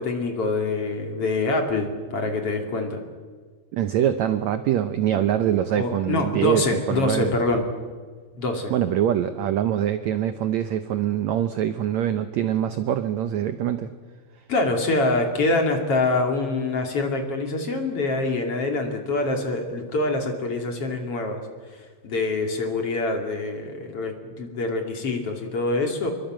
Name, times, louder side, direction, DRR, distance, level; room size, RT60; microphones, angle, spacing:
voice 1, 0.0-3.0 5.8-7.6 8.3-8.7 14.5-21.4 22.0-26.1, left 2 dB, 40° left, 3 dB, 3.3 m, -25 dB
voice 2, 3.7-7.3 8.7-13.9, right 10 dB, 75° right, 10 dB, 1.6 m, -24 dB
26.0 x 22.5 x 7.7 m, 1.5 s
omnidirectional pair, 4.3 m